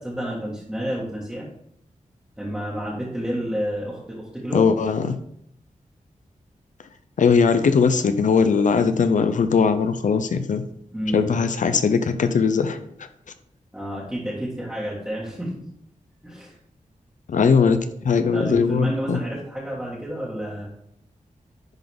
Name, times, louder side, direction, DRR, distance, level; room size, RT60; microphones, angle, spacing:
voice 1, 0.0-1.5 2.4-4.7 10.9-11.3 13.7-15.5 16.2-16.6 17.5-17.8 18.3-20.7, equal, 10° right, -8 dB, 1.7 m, -30 dB
voice 2, 4.5-5.2 7.2-10.6 11.1-12.8 17.3-17.8 18.0-19.2, left 5 dB, 70° left, 10 dB, 0.6 m, -19 dB
10.5 x 3.9 x 3.6 m, 0.71 s
wide cardioid pair, 155°, 14 cm